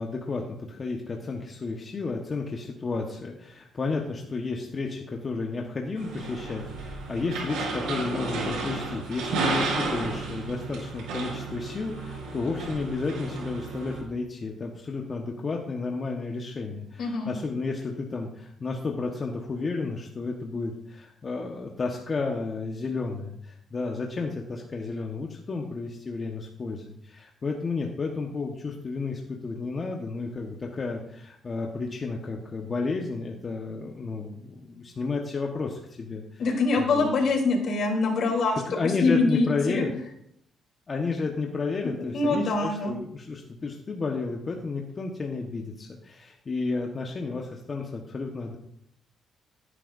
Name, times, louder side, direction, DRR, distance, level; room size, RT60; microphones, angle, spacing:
voice 1, 0.0-36.5 36.8-37.1 38.6-39.9 40.9-48.6, left 4 dB, 35° left, 1 dB, 1.3 m, -32 dB
sound 1, 6.0-14.0, right 3 dB, 85° right, 4.9 m, -32 dB
voice 2, 17.0-17.3 36.4-39.8 42.1-42.9, left 3 dB, 65° left, 1 dB, 3.5 m, -24 dB
16.5 x 10.0 x 2.7 m, 0.73 s
cardioid pair, 90°, 0 cm